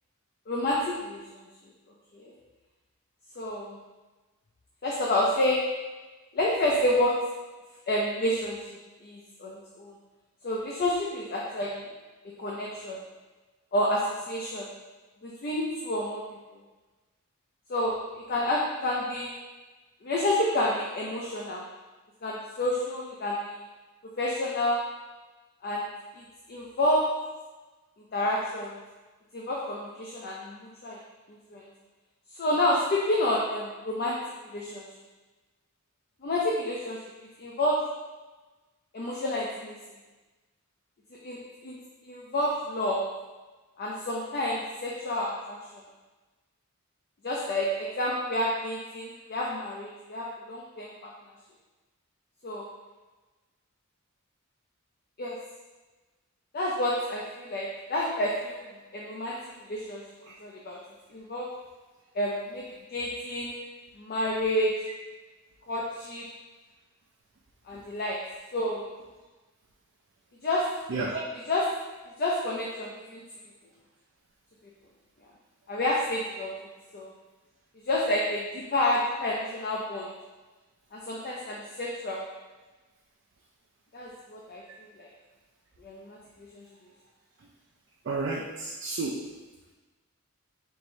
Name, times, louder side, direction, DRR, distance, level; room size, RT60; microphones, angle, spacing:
voice 1, 0.5-1.5 2.1-2.3 3.4-3.8 4.8-5.6 6.3-7.1 7.9-9.9 10.4-11.9 12.4-13.0 13.7-14.0 14.3-14.7 15.2-16.2 17.7-17.9 18.3-19.3 20.0-21.6 22.2-23.6 24.2-24.8 25.6-25.9 26.1-27.1 28.1-28.8 29.3-31.0 31.5-31.6 32.4-34.2 34.5-34.9 36.2-37.0 37.4-37.8 38.9-39.7 41.2-41.4 41.6-41.8 42.0-43.0 43.8-45.8 47.2-50.9 52.4-52.7 55.2-55.3 56.5-58.6 58.9-59.3 59.6-60.0 60.4-60.8 61.1-61.5 62.1-63.6 64.0-64.7 65.7-66.2 67.7-68.2 68.5-68.8 70.4-70.6 71.5-71.6 72.2-73.2 75.7-76.5 76.9-77.1 77.9-80.1 80.9-82.2 83.9-84.6 85.0-85.1 85.8-86.7, left 1 dB, 45° left, -3 dB, 0.5 m, -29 dB
voice 2, 70.9-71.2 88.0-89.2, right 3 dB, 55° right, -4 dB, 0.4 m, -31 dB
4.6 x 3.0 x 2.6 m, 1.2 s
head